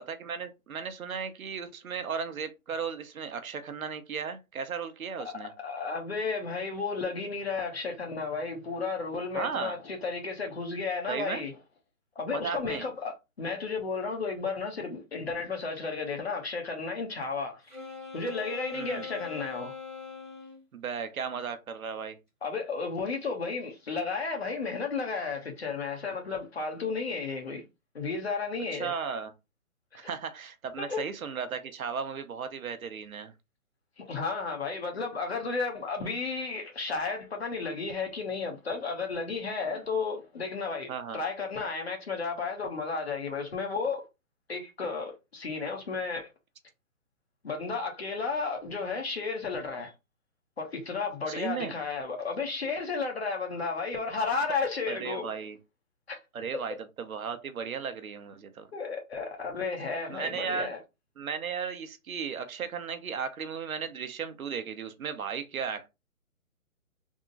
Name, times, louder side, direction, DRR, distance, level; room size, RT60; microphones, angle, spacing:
voice 1, 0.0-5.5 9.3-9.8 11.1-11.4 12.3-12.9 18.7-19.1 20.7-22.2 28.7-29.3 29.9-33.3 39.7-39.8 40.9-41.2 51.3-51.8 54.9-55.6 56.3-58.7 60.1-60.7 61.2-65.9, right 6 dB, 75° right, 0.8 m, -35 dB
voice 2, 5.6-11.5 12.1-17.6 18.1-19.8 22.4-27.6 27.9-28.9 29.9-30.1 30.8-31.0 34.0-44.1 44.5-46.3 47.4-49.9 50.6-55.2 56.1-56.2 58.7-60.8, left 4 dB, 45° left, 1.1 m, -33 dB
Wind instrument woodwind instrument, 17.7-20.6, left 6 dB, 5° left, 0.8 m, -41 dB
3.6 x 2.1 x 3.8 m
hypercardioid pair, 180°, 42 cm